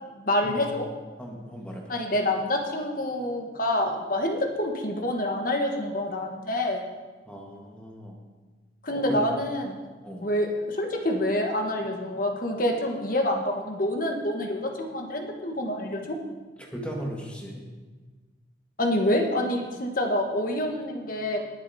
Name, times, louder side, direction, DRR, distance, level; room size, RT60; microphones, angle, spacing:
voice 1, 0.1-0.9 1.9-6.8 8.8-9.8 10.2-16.2 18.8-21.4, left 1 dB, 45° left, 3 dB, 1.5 m, -27 dB
voice 2, 1.2-1.8 7.3-8.3 8.9-9.2 10.0-10.3 16.7-17.6, equal, 5° left, -1 dB, 1.8 m, -37 dB
19.5 x 7.2 x 4.3 m, 1.3 s
head